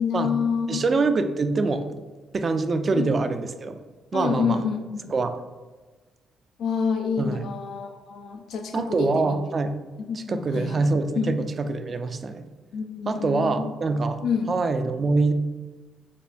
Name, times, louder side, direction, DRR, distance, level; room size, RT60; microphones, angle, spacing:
voice 1, 0.0-0.8 2.9-3.1 4.1-5.1 6.6-9.4 10.0-11.4 12.7-13.7 14.2-14.5, left 6 dB, 75° left, 4 dB, 0.3 m, -28 dB
voice 2, 0.7-1.9 2.3-3.8 4.1-4.6 5.1-5.4 7.2-7.4 8.7-9.8 10.3-12.4 13.1-14.2 14.5-15.3, right 3 dB, 40° right, 9 dB, 0.3 m, -24 dB
5.2 x 2.2 x 2.5 m, 1.3 s
cardioid pair, 90°, 0 cm